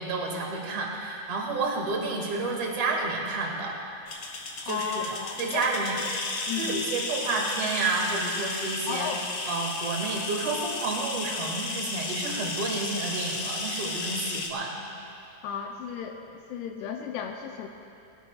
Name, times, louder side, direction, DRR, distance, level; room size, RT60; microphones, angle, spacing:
voice 1, 0.0-3.8 4.6-5.1 5.4-6.0 6.5-9.1 9.5-14.8, right 3 dB, 45° right, -1 dB, 2.4 m, -30 dB
sound 1, 4.1-14.5, left 3 dB, 65° left, 1.4 m, -34 dB
voice 2, 4.6-5.7 5.9-6.1 6.5-6.8 8.9-9.3 15.4-17.7, left 7 dB, 80° left, 2 dB, 2.7 m, -34 dB
23.0 x 17.0 x 2.4 m, 2.8 s
omnidirectional pair, 4.8 m